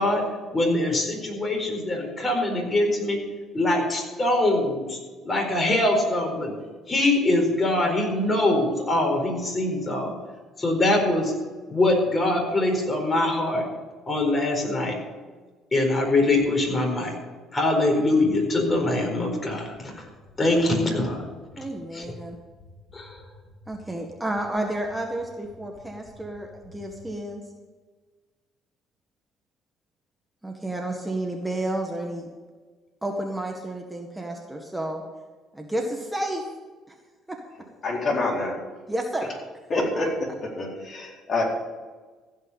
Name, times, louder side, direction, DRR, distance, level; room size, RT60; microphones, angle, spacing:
voice 1, 0.0-3.2 3.5-6.5 6.9-10.1 10.6-11.3 11.7-13.7 14.1-15.0 15.7-17.1 17.5-20.1 20.4-21.3 21.9-22.0 22.9-23.2, left 2 dB, 30° left, 1 dB, 4.4 m, -23 dB
sound 1, 20.0-27.0, left 3 dB, 70° left, 2.5 m, -53 dB
voice 2, 21.6-22.4 23.7-27.4 30.4-32.3 33.0-35.0 35.5-36.4 37.3-37.4 38.9-39.3 40.0-40.1, right 1 dB, 10° right, 2 dB, 1.7 m, -31 dB
voice 3, 37.8-38.6 39.7-40.1 40.4-41.4, left 2 dB, 45° left, -2 dB, 4.1 m, -26 dB
15.0 x 5.6 x 8.6 m, 1.4 s
supercardioid pair, 70°, 0 cm